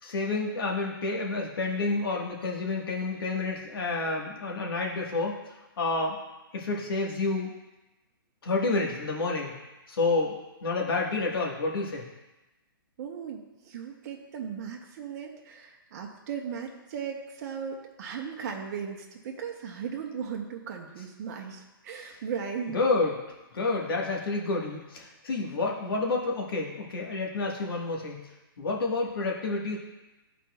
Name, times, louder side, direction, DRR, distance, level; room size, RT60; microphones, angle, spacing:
voice 1, 0.0-5.4 5.8-6.2 6.5-7.5 8.4-9.5 9.9-12.1 22.7-23.2 23.5-28.2 28.6-29.8, left 3 dB, 70° left, -1 dB, 1.5 m, -29 dB
voice 2, 13.0-22.8, right 7 dB, 45° right, 0 dB, 0.9 m, -37 dB
12.5 x 4.2 x 2.3 m, 1.0 s
hypercardioid pair, 155°, 12 cm